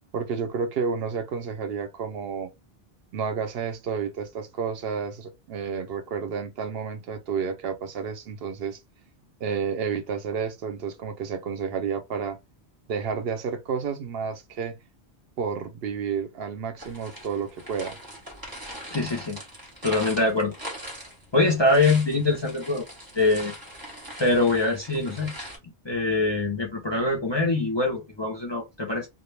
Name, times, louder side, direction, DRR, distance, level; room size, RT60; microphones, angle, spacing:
voice 1, 0.1-2.5 3.1-8.8 9.4-12.4 12.9-14.8 15.4-18.0, right 6 dB, 70° right, 0.8 m, -30 dB
sound 1, 16.8-25.6, equal, 20° right, 1.0 m, -41 dB
voice 2, 18.9-19.4 19.8-20.5 21.3-22.9 23.1-23.6 24.2-25.3 25.8-29.1, left 2 dB, 35° left, 0.5 m, -23 dB
2.1 x 2.1 x 3.1 m
omnidirectional pair, 1.1 m